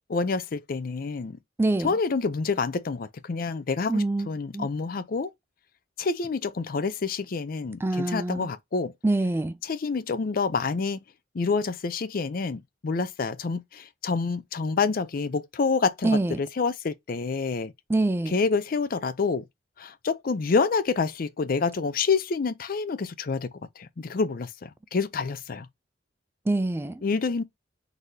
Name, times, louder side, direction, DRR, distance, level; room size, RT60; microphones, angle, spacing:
voice 1, 0.1-1.4 1.8-5.3 6.0-8.9 9.6-11.0 11.3-17.7 18.3-19.5 19.8-23.5 23.8-25.7 27.0-27.4, left 4 dB, 50° left, 0.5 m, -27 dB
voice 2, 1.6-2.0 3.9-4.3 4.5-4.7 7.8-8.5 9.0-9.6 16.0-16.4 17.9-18.3 26.5-27.0, right 2 dB, 15° right, 0.3 m, -25 dB
4.0 x 2.7 x 3.1 m
head